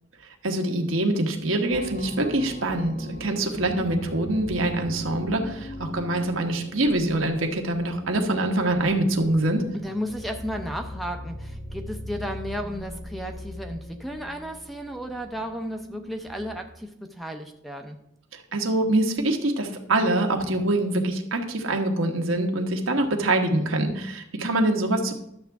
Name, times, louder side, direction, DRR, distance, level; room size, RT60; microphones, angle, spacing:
voice 1, 0.4-9.6 18.5-25.1, right 1 dB, 85° right, 3 dB, 1.3 m, -24 dB
sound 1, 1.7-16.8, equal, 55° left, 1.4 m, -40 dB
voice 2, 9.7-18.0, equal, ahead, 5 dB, 0.6 m, -34 dB
11.5 x 7.2 x 3.5 m, 0.77 s
head